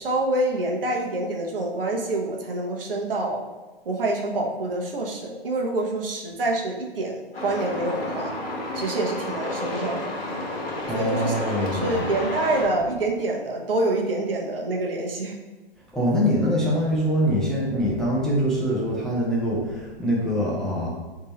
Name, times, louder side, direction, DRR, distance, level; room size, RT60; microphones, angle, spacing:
voice 1, 0.0-3.4 3.9-8.3 8.7-10.2 10.9-15.4, right 2 dB, 70° right, 0 dB, 1.0 m, -26 dB
Truck, 7.3-12.6, left 2 dB, 90° left, 1.4 m, -31 dB
voice 2, 10.9-12.1 15.9-20.9, equal, ahead, -6 dB, 0.4 m, -24 dB
3.6 x 2.8 x 4.2 m, 1.2 s
figure-of-eight pair, 120°, 29 cm